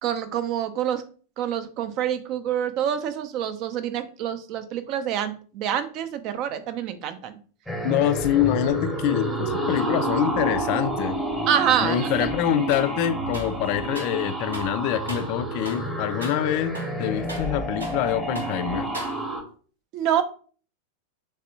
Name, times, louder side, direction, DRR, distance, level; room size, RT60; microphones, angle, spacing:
voice 1, 0.0-1.0 1.4-7.4 11.5-12.1 19.9-20.2, right 9 dB, 40° right, 0.4 m, -26 dB
sound 1, 7.7-19.4, right 2 dB, 5° right, 0.8 m, -29 dB
voice 2, 7.8-11.3 11.8-18.9, left 11 dB, 45° left, 0.3 m, -25 dB
sound 2, 12.7-12.9 13.3-14.2 14.5-14.8 15.1-15.4 15.7-15.9 16.2-16.4 16.7-18.1 18.4-18.6 18.9-19.5, equal, 80° right, 0.8 m, -39 dB
3.3 x 3.3 x 2.8 m
figure-of-eight pair, 90°, 0 cm